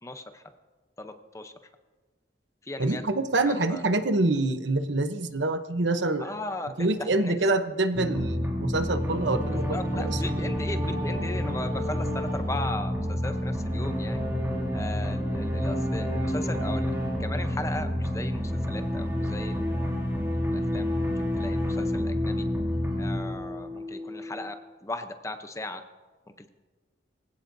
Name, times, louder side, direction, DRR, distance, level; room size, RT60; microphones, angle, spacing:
voice 1, 0.0-0.4 1.0-1.5 2.6-3.0 3.5-3.8 6.2-7.4 9.5-14.2 14.7-16.9 17.2-19.8 20.5-21.0 21.4-22.4 23.0-24.5 24.8-25.8 26.4-26.5, left 2 dB, 15° left, 8 dB, 0.7 m, -37 dB
voice 2, 2.8-6.3 6.8-9.6 9.9-10.2, right 2 dB, 75° right, 9 dB, 0.9 m, -26 dB
sound 1, 7.9-24.5, equal, 15° right, 2.5 m, -29 dB
23.5 x 16.0 x 2.7 m, 1.4 s
head